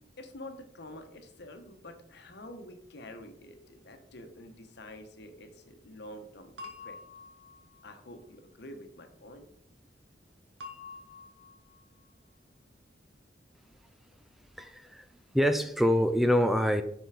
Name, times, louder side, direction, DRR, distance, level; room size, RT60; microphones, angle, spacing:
voice 1, 0.2-7.0 7.8-9.5, left 1 dB, 65° left, 6 dB, 1.1 m, -47 dB
sound 1, 6.6-7.9 10.6-11.8, left 4 dB, 90° right, 1.5 m, -47 dB
voice 2, 14.6-15.1 15.3-16.8, equal, ahead, 8 dB, 0.3 m, -25 dB
5.8 x 5.5 x 4.8 m, 0.69 s
head